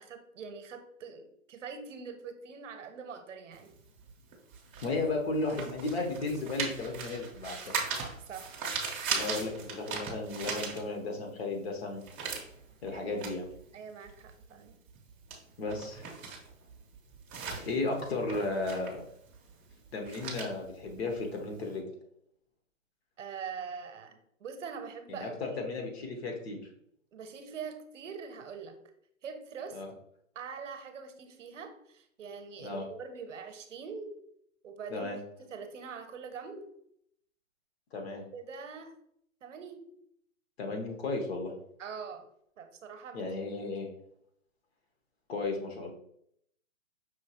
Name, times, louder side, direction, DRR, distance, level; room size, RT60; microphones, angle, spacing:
voice 1, 0.0-3.7 8.3-8.6 12.9-13.2 13.7-14.8 23.2-25.6 27.1-28.8 29.2-29.8 30.3-34.1 34.6-35.1 35.4-36.7 38.3-38.9 39.4-39.9 41.8-42.3 42.6-43.2, right 6 dB, 65° right, 7 dB, 0.8 m, -43 dB
sound 1, 3.5-11.3 11.6-21.7, right 5 dB, 15° right, 0.6 m, -39 dB
voice 2, 4.8-7.7 9.1-12.0 12.8-13.5 15.6-16.1 17.6-19.0 19.9-21.8 25.1-26.6 29.7-29.9 32.6-32.8 34.9-35.2 37.9-38.2 40.6-41.5 43.1-43.9 45.3-45.9, left 3 dB, 50° left, 2 dB, 1.2 m, -34 dB
5.6 x 3.0 x 2.9 m, 0.71 s
hypercardioid pair, 140°, 41 cm